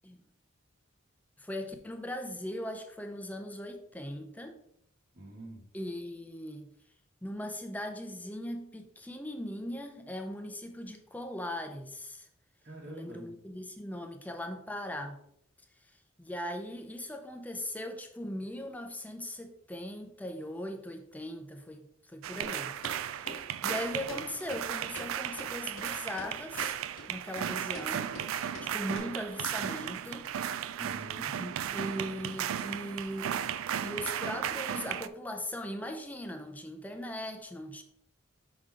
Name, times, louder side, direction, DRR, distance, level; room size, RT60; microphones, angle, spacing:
voice 1, 1.4-4.6 5.7-6.7 7.2-12.3 12.8-15.2 15.8-15.9 16.2-22.8 23.1-23.4 23.6-26.8 27.1-28.2 28.6-30.3 31.4-33.4 33.8-37.8, left 1 dB, 5° left, 5 dB, 0.6 m, -39 dB
voice 2, 5.1-5.6 12.6-13.3 30.8-31.3, right 1 dB, 45° right, -5 dB, 1.3 m, -45 dB
sound 1, 22.2-35.1, right 9 dB, 80° right, 0.3 m, -35 dB
sound 2, 22.4-22.5 22.8-23.0 23.3-23.4 23.7-23.8 24.1-24.2 24.5-24.6 25.0-25.1 25.4-25.5 25.8-25.9 26.2-26.3 26.6-26.7 27.0-27.1 27.4-27.5 27.7-27.9 28.1-28.3 28.5-28.7 28.9-29.0, left 1 dB, 80° left, 1.7 m, -43 dB
6.0 x 3.8 x 4.9 m, 0.74 s
head